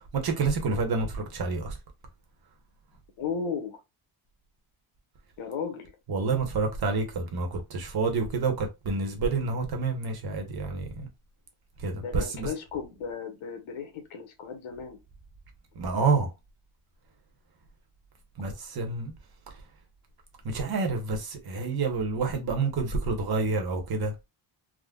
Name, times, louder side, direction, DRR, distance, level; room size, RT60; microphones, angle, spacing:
voice 1, 0.2-1.8 6.1-11.1 11.8-12.5 15.8-16.3 18.4-19.1 20.4-24.1, right 4 dB, 50° right, 0.9 m, -28 dB
voice 2, 3.2-3.8 5.4-5.9 7.9-8.0 12.0-15.0, left 6 dB, 80° left, 1.0 m, -35 dB
3.6 x 2.1 x 2.3 m
wide cardioid pair, 165°, 48 cm